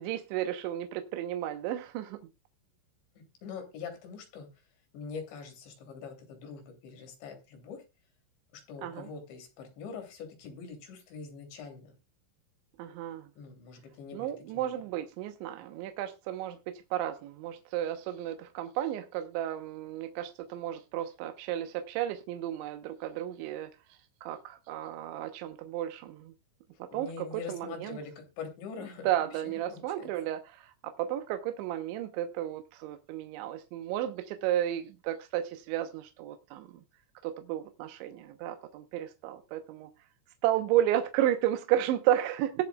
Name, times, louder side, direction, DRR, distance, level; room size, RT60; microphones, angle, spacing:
voice 1, 0.0-2.2 8.8-9.1 12.8-13.2 14.1-23.7 24.2-26.3 26.9-27.1 27.5-28.0 29.0-36.7 37.2-39.9 40.4-42.6, right 12 dB, 80° right, 3.2 m, -32 dB
voice 2, 3.2-4.5 4.9-7.8 8.5-12.0 13.4-14.7 26.9-30.1, left 5 dB, 70° left, 5.3 m, -44 dB
21.0 x 7.5 x 2.3 m
omnidirectional pair, 5.4 m